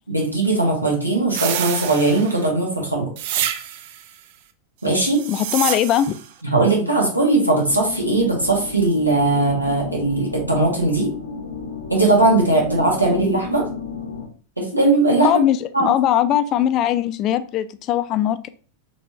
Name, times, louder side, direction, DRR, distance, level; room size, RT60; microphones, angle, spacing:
voice 1, 0.1-3.1 4.8-5.2 6.4-11.1 11.9-13.7 14.6-15.3 15.7-15.9, right 2 dB, 85° right, -2 dB, 1.3 m, -19 dB
sound 1, 1.3-2.5 3.2-4.0 5.0-6.3, right 10 dB, 50° right, 0.4 m, -27 dB
voice 2, 5.3-6.2 15.2-18.5, left 11 dB, 35° left, 12 dB, 0.3 m, -20 dB
sound 2, 7.6-14.3, left 4 dB, 80° left, 0.7 m, -33 dB
4.2 x 3.1 x 2.8 m, 0.40 s
figure-of-eight pair, 90°, 0 cm